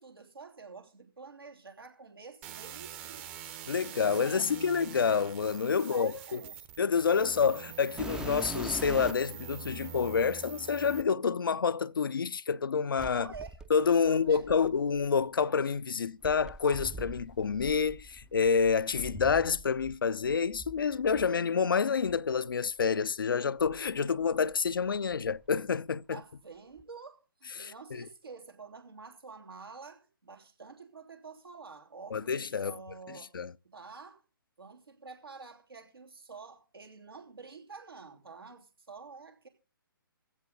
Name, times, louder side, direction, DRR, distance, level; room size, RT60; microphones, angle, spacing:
voice 1, 0.0-3.3 3.9-5.0 5.8-6.5 7.2-7.4 13.1-13.6 14.0-14.6 26.1-33.3 33.6-34.2 34.6-39.5, right 4 dB, 80° right, 3.1 m, -49 dB
sound 1, 2.4-11.0, right 10 dB, 30° right, 1.0 m, -45 dB
voice 2, 3.7-6.4 6.8-13.3 13.7-26.2 27.6-28.1 32.1-32.7 33.1-33.5, left 6 dB, 70° left, 0.5 m, -28 dB
sound 2, 8.0-9.4 10.2-10.3 13.0-15.1 16.2-20.0 20.2-21.3 22.1-22.2 22.8-22.9 23.6-24.7 24.9-25.5 26.8-26.9, right 2 dB, 5° right, 0.5 m, -43 dB
15.5 x 11.5 x 4.0 m
figure-of-eight pair, 135°, 12 cm